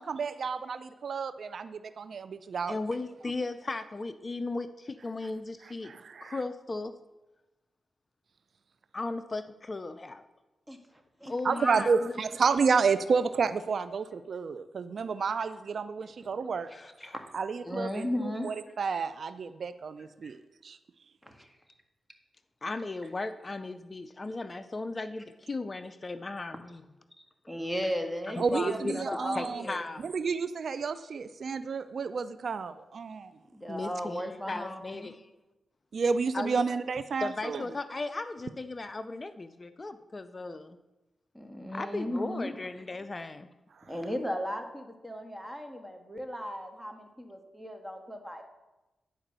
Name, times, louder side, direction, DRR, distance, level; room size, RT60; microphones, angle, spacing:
voice 1, 0.0-2.8 5.8-6.4 11.4-16.7 17.3-20.8 28.4-29.6 30.0-33.3 35.9-37.6, right 5 dB, 65° right, 13 dB, 0.4 m, -30 dB
voice 2, 2.7-6.9 8.9-10.3 11.3-12.2 16.7-17.1 22.6-26.8 28.4-29.1 29.3-30.1 33.7-35.3 36.3-36.6 37.2-40.8 41.7-43.5, left 3 dB, 40° left, 12 dB, 0.5 m, -36 dB
voice 3, 17.6-18.5 20.2-20.3 21.2-21.5 27.5-29.8 33.5-35.1 41.3-42.5 43.9-48.4, equal, 5° right, 4 dB, 1.7 m, -36 dB
10.0 x 4.9 x 6.7 m, 1.0 s
cardioid pair, 50°, 0 cm